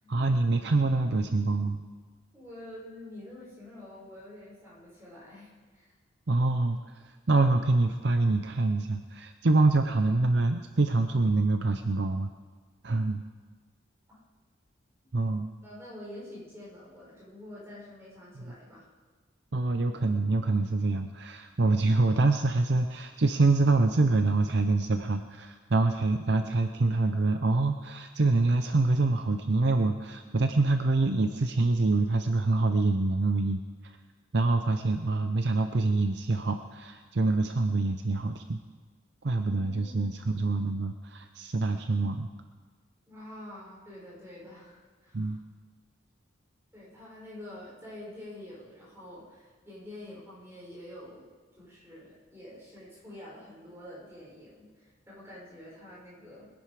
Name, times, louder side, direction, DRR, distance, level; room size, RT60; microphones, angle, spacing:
voice 1, 0.1-1.8 6.3-6.8 7.0-12.3 12.8-13.2 15.1-15.5 18.4-18.5 19.5-33.6 34.3-38.6 39.2-42.3 45.1-45.4, right 3 dB, 55° right, 7 dB, 0.6 m, -25 dB
voice 2, 2.3-5.9 15.6-18.9 39.5-40.3 43.1-45.4 46.7-51.3 51.6-56.5, left 1 dB, 15° right, -7 dB, 5.7 m, -47 dB
21.0 x 10.5 x 4.9 m, 1.4 s
head